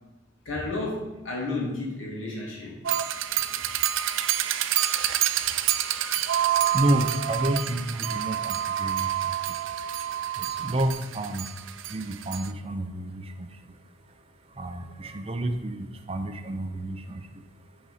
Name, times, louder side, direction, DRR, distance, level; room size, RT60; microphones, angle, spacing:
voice 1, 0.4-2.8 3.1-3.6 5.3-6.4, left 2 dB, 80° left, -3 dB, 2.1 m, -34 dB
sound 1, 2.8-12.5, right 11 dB, 80° right, 0.4 m, -27 dB
voice 2, 6.5-11.5 11.8-17.4, right 1 dB, 30° right, 6 dB, 0.5 m, -31 dB
9.4 x 4.0 x 4.9 m, 1.0 s
head